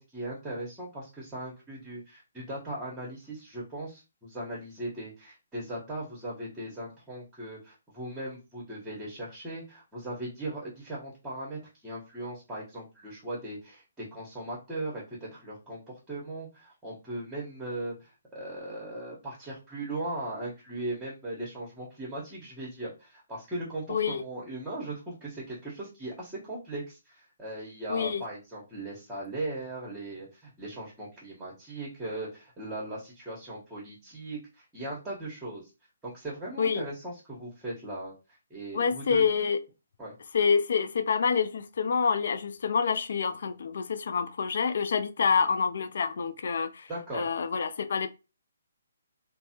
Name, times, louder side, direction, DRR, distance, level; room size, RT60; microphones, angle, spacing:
voice 1, 0.0-35.7 36.0-38.1 38.5-39.2 40.0-40.1 45.4-45.5 46.9-47.3, right 1 dB, 10° right, 1.0 m, -38 dB
voice 2, 23.9-24.2 27.9-28.2 36.6-36.8 38.7-39.6 40.3-48.1, left 6 dB, 60° left, 0.4 m, -27 dB
3.2 x 2.1 x 2.8 m
figure-of-eight pair, 140°, 0 cm